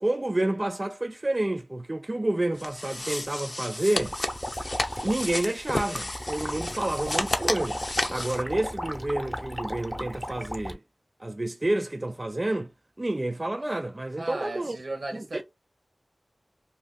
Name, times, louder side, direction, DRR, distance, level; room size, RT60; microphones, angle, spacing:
voice 1, 0.0-4.2 5.0-7.8 8.1-10.8 11.2-12.7 13.0-14.8 15.1-15.4, right 1 dB, 40° right, 0.3 m, -29 dB
sound 1, 2.6-8.4, left 2 dB, 50° left, 0.6 m, -32 dB
sound 2, 4.0-10.7, equal, 10° left, 0.8 m, -35 dB
voice 2, 14.2-15.4, right 2 dB, 75° right, 0.9 m, -35 dB
2.5 x 2.4 x 3.6 m
cardioid pair, 40°, 0 cm